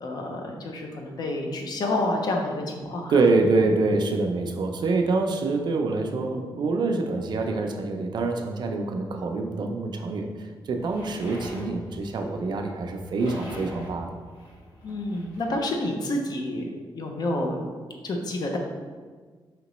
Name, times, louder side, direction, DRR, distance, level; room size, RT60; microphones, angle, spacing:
voice 1, 0.0-3.1 14.8-16.6 16.9-17.6 18.0-18.6, left 1 dB, 50° left, 2 dB, 0.6 m, -29 dB
voice 2, 3.1-14.1, right 3 dB, 55° right, 3 dB, 0.5 m, -25 dB
sound 1, 10.8-15.6, left 1 dB, 75° left, 1.4 m, -45 dB
5.0 x 2.9 x 3.0 m, 1.5 s
wide cardioid pair, 155°, 9 cm